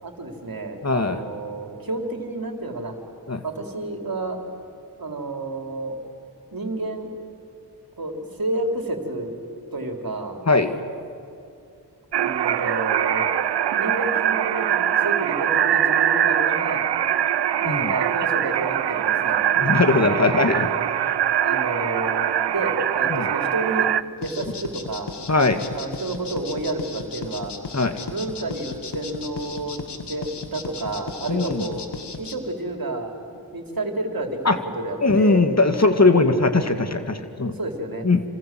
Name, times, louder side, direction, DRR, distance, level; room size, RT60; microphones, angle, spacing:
voice 1, 0.0-2.9 3.4-4.4 5.0-6.0 6.5-7.1 8.0-9.3 9.7-10.4 12.2-13.3 13.7-16.8 17.5-19.4 21.4-23.9 24.2-25.2 25.7-27.5 28.0-35.5 37.4-38.1, right 2 dB, 55° right, 3 dB, 4.1 m, -30 dB
voice 2, 0.8-1.2 3.3-3.4 10.5-10.8 17.7-17.9 19.6-20.7 21.0-21.1 23.1-23.3 25.3-25.7 27.7-28.0 31.3-31.7 34.5-34.6 35.0-37.5 38.0-38.2, left 3 dB, 40° left, 7 dB, 2.2 m, -20 dB
sound 1, 12.1-24.0, right 10 dB, 80° right, 0.7 m, -22 dB
sound 2, 24.2-32.3, left 5 dB, 80° left, 2.2 m, -35 dB
27.5 x 26.5 x 7.8 m, 2.5 s
cardioid pair, 40°, 41 cm